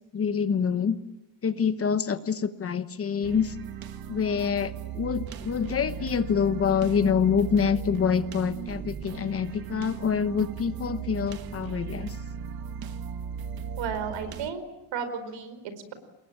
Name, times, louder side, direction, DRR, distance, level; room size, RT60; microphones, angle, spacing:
voice 1, 0.1-1.0 1.4-3.6 4.1-12.2, left 6 dB, 30° left, 12 dB, 1.0 m, -26 dB
sound 1, 3.2-14.5, right 7 dB, 50° right, 1.6 m, -37 dB
voice 2, 13.8-14.6 14.9-15.9, right 6 dB, 75° right, 10 dB, 4.8 m, -33 dB
27.0 x 21.5 x 8.8 m, 1.0 s
cardioid pair, 175°, 45 cm